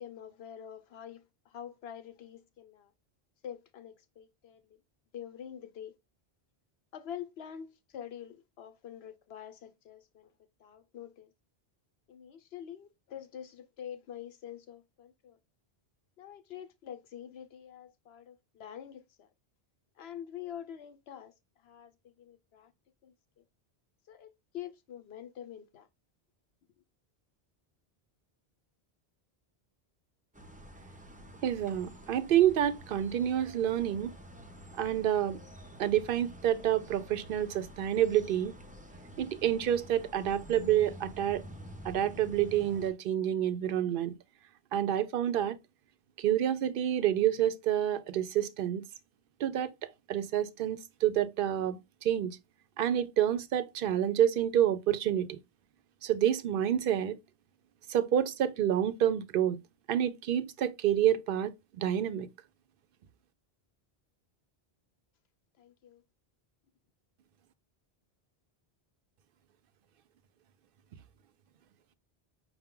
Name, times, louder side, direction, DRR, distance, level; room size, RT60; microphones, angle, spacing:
voice 1, 0.0-2.9 3.4-4.8 5.1-5.9 6.9-10.3 10.6-11.3 12.1-15.4 16.2-19.3 20.0-21.3 21.6-22.7 23.0-23.4 24.1-25.9 65.6-66.0, left 9 dB, 75° left, 0.9 m, -46 dB
sound 1, 30.3-42.9, equal, 10° right, 0.4 m, -49 dB
voice 2, 31.4-34.1 34.8-35.4 35.8-38.5 39.2-41.4 41.8-44.1 44.7-45.6 46.2-48.8 49.4-49.7 50.1-52.4 52.8-55.4 56.0-57.2 57.9-59.6 59.9-62.3, right 10 dB, 65° right, 0.7 m, -28 dB
5.6 x 2.2 x 3.6 m
omnidirectional pair, 1.1 m